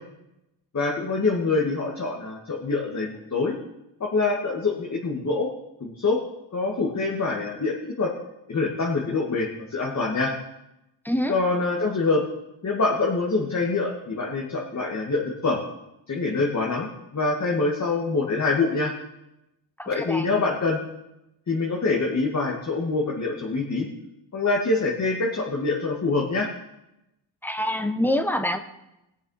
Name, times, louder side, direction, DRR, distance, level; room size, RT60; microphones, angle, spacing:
voice 1, 0.7-3.5 4.0-5.5 5.8-6.2 6.5-8.1 8.5-10.3 11.3-12.3 12.6-15.6 16.1-18.9 19.9-20.8 21.5-23.9 24.3-26.5, left 3 dB, 35° left, -2 dB, 2.2 m, -25 dB
voice 2, 19.8-20.3 27.4-28.6, left 1 dB, 5° left, 8 dB, 1.1 m, -25 dB
19.0 x 7.3 x 5.7 m, 0.90 s
cardioid pair, 90°, 47 cm